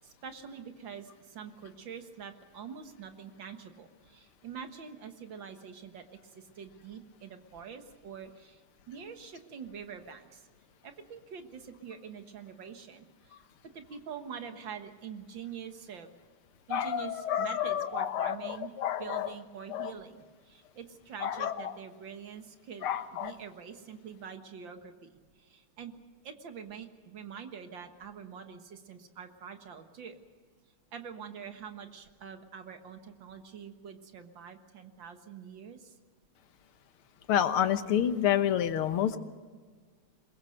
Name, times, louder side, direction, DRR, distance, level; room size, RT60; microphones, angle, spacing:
voice 1, 0.0-8.6 8.9-10.5 10.8-13.4 13.7-16.1 16.7-18.7 19.0-26.0 26.2-30.2 30.9-35.9, right 7 dB, 60° right, 7 dB, 2.1 m, -45 dB
voice 2, 16.7-19.3 19.7-19.9 21.2-21.8 22.8-23.3 37.3-39.2, left 10 dB, 85° left, 10 dB, 2.0 m, -29 dB
22.5 x 21.0 x 6.5 m, 1.5 s
omnidirectional pair, 2.4 m